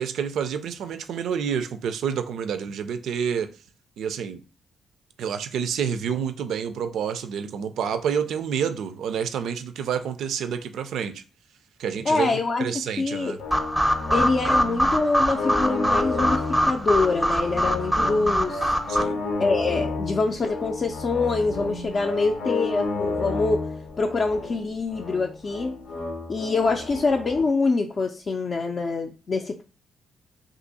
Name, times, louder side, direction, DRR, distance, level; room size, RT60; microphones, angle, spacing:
voice 1, 0.0-3.5 4.0-4.4 5.2-11.2 11.8-13.4 18.9-19.2, right 7 dB, 80° right, 0.3 m, -28 dB
voice 2, 12.1-12.6 13.0-13.3 14.1-18.8 19.4-23.7 24.0-25.7 26.3-29.6, left 3 dB, 50° left, 0.4 m, -25 dB
sound 1, 13.4-27.4, left 3 dB, 85° left, 0.7 m, -31 dB
sound 2, 13.5-19.0, equal, ahead, 0.5 m, -24 dB
2.7 x 2.5 x 3.9 m
supercardioid pair, 60°, 0 cm